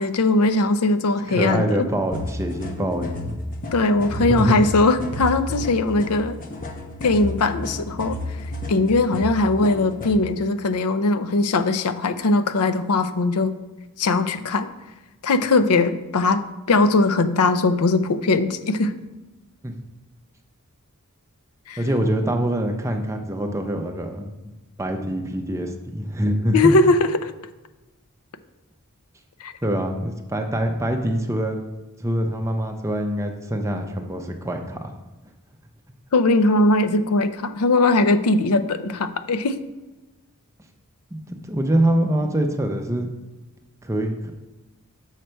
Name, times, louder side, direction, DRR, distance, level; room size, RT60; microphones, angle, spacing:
voice 1, 0.0-1.9 3.7-6.4 7.0-8.2 8.7-13.5 14.0-14.7 15.2-18.9 21.7-21.8 26.5-27.3 29.4-29.5 36.1-39.6, left 2 dB, 80° left, 11 dB, 0.6 m, -20 dB
voice 2, 1.3-3.4 4.2-4.6 19.6-19.8 21.8-24.3 24.8-26.8 29.6-31.6 32.0-34.9 41.1-43.1 43.8-44.3, right 1 dB, 15° right, 4 dB, 0.6 m, -24 dB
sound 1, 2.1-10.2, left 1 dB, 40° left, 0.9 m, -32 dB
6.5 x 6.5 x 4.5 m, 1.1 s
head